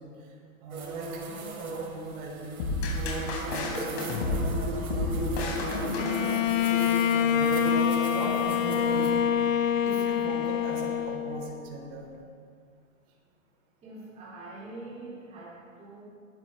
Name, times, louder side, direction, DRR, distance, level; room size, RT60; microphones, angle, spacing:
voice 1, 0.0-2.6 2.9-4.8 5.1-5.7 7.4-9.3 9.8-12.1, right 2 dB, 35° right, -4 dB, 3.7 m, -40 dB
sound 1, 0.7-9.1, right 2 dB, 90° right, 3.0 m, -36 dB
sound 2, 2.6-6.8, left 2 dB, 45° left, 3.3 m, -31 dB
voice 2, 5.7-6.9 13.8-16.0, right 2 dB, 15° right, -7 dB, 2.6 m, -44 dB
Bowed string instrument, 6.0-11.7, left 9 dB, 65° left, 0.9 m, -26 dB
19.0 x 11.5 x 3.3 m, 2.3 s
hypercardioid pair, 150°, 42 cm